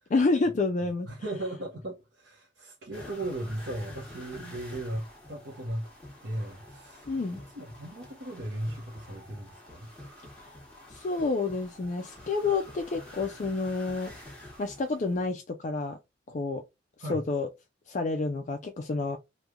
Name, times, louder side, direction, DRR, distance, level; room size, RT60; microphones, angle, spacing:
voice 1, 0.1-1.1 7.1-7.4 10.4-10.5 10.9-14.1 14.6-16.0 16.3-16.6 17.1-17.5 17.9-19.2, left 3 dB, 40° left, 0.4 m, -29 dB
voice 2, 1.0-5.9 6.2-9.9 16.3-16.4 17.0-17.2, right 1 dB, 70° right, 0.8 m, -37 dB
sound 1, 2.9-15.3, left 1 dB, 5° left, 1.2 m, -48 dB
3.1 x 2.2 x 3.5 m
head